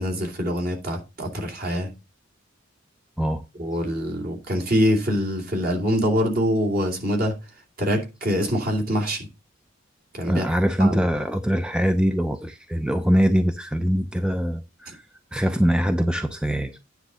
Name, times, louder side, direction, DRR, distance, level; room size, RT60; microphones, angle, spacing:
voice 1, 0.0-1.9 3.6-7.3 7.8-9.3 10.1-10.5 10.8-11.0 14.9-15.0, equal, 50° right, 2.6 m, -24 dB
voice 2, 10.2-15.0 15.3-16.8, equal, 5° right, 0.5 m, -23 dB
9.6 x 3.8 x 6.8 m
head